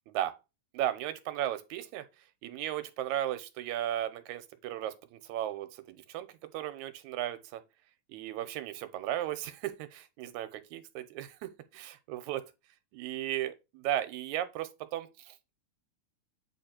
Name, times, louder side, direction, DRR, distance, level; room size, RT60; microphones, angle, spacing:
voice 1, 0.7-2.1 2.4-7.6 8.1-12.5 12.9-15.4, right 12 dB, 80° right, 2.1 m, -36 dB
8.5 x 3.1 x 4.4 m
omnidirectional pair, 3.4 m